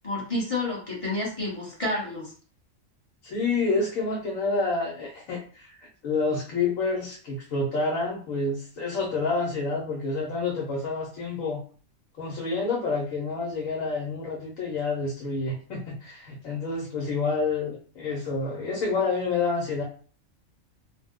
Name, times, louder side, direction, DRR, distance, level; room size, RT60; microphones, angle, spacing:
voice 1, 0.0-2.3, left 2 dB, 30° left, -5 dB, 0.9 m, -29 dB
voice 2, 3.2-11.6 12.2-19.8, left 3 dB, 75° left, -2 dB, 1.2 m, -28 dB
2.7 x 2.1 x 3.6 m, 0.41 s
omnidirectional pair, 1.4 m